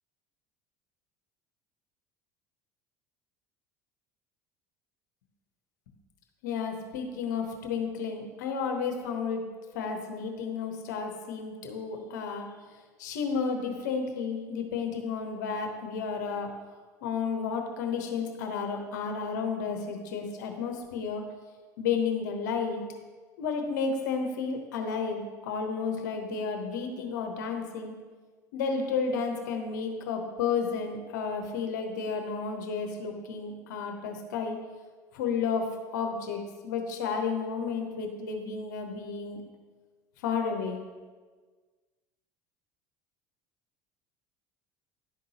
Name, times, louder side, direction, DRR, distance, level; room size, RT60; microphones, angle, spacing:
voice 1, 6.4-9.4 9.7-12.5 13.0-16.5 17.0-21.2 21.8-22.8 23.4-27.9 28.5-34.6 35.1-39.4 40.2-40.8, left 5 dB, 80° left, 3 dB, 1.1 m, -32 dB
10.5 x 3.9 x 4.2 m, 1.4 s
hypercardioid pair, 80°, 10 cm